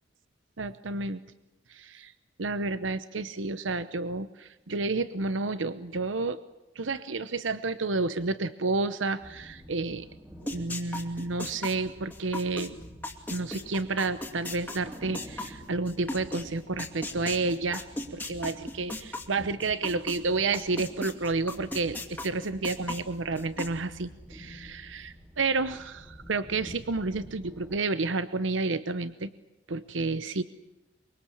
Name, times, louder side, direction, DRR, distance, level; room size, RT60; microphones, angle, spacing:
voice 1, 0.6-1.2 1.7-2.1 2.4-6.4 6.8-10.1 10.4-12.8 13.3-17.8 18.1-29.3 29.7-30.4, right 3 dB, 80° right, 13 dB, 0.9 m, -30 dB
sound 1, 9.2-27.8, equal, 10° right, 3.1 m, -49 dB
sound 2, 10.5-16.4 16.8-20.2 20.5-23.7, left 2 dB, 10° left, 2.4 m, -36 dB
24.5 x 23.5 x 8.7 m, 0.95 s
head